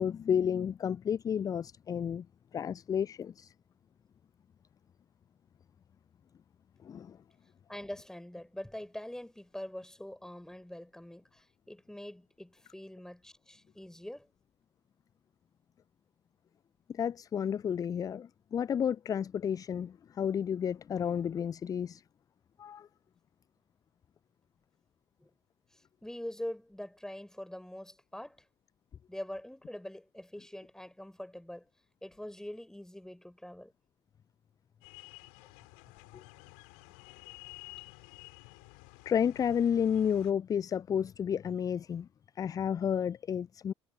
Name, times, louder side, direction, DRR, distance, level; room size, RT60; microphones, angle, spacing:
voice 1, 0.0-2.3 2.5-3.5 6.8-7.2 16.9-22.0 22.6-22.9 36.1-36.2 39.1-42.1 42.4-43.7, left 8 dB, 25° left, 0.4 m, -31 dB
voice 2, 7.7-14.3 25.2-25.3 26.0-28.5 29.1-31.7 32.0-33.7, left 1 dB, 5° left, 4.1 m, -44 dB
sound 1, 34.8-40.3, left 40 dB or more, 60° left, 5.4 m, -52 dB
figure-of-eight pair, 60°, 15 cm